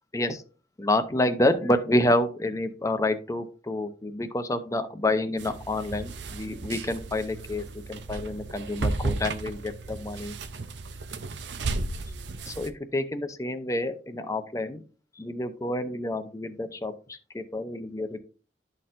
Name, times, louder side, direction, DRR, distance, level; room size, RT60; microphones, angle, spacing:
voice 1, 0.8-7.6 7.9-10.4 12.5-14.8 15.2-18.2, left 1 dB, 20° left, 9 dB, 0.7 m, -28 dB
sound 1, 5.4-12.7, right 3 dB, 85° right, 0.7 m, -34 dB
12.0 x 4.3 x 2.5 m, 0.37 s
head